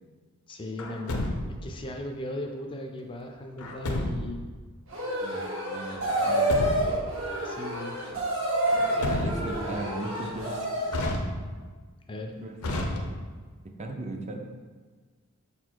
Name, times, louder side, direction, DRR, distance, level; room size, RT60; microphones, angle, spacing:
voice 1, 0.5-4.5 7.4-8.0 12.1-12.3, left 1 dB, 20° left, 3 dB, 0.4 m, -37 dB
Truck, 0.8-1.7 3.6-4.4 6.1-7.1 8.7-9.7 10.9-11.7 12.6-13.5, left 1 dB, 85° left, 0.7 m, -31 dB
sound 1, 4.9-11.1, right 1 dB, 65° right, 1.7 m, -28 dB
voice 2, 5.2-6.7 9.0-10.9 12.4-12.9 13.8-14.4, right 2 dB, 30° right, 2 dB, 0.5 m, -38 dB
5.4 x 4.2 x 4.6 m, 1.4 s
head